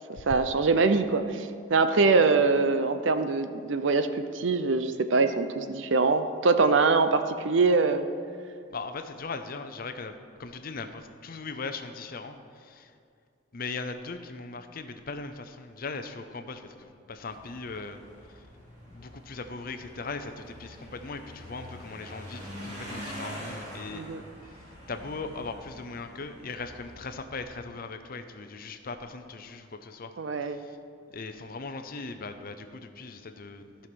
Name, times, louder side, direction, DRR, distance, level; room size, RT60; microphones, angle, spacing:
voice 1, 0.3-8.1 23.9-24.2 30.2-30.6, right 4 dB, 70° right, 9 dB, 0.6 m, -23 dB
voice 2, 8.7-10.1 10.4-12.9 13.5-18.0 18.3-18.4 18.9-24.0 24.9-30.1 30.4-30.8 31.1-33.9, left 4 dB, 45° left, 8 dB, 0.6 m, -39 dB
sound 1, 17.2-27.2, equal, 35° right, 2.6 m, -44 dB
14.0 x 5.7 x 6.1 m, 2.3 s
head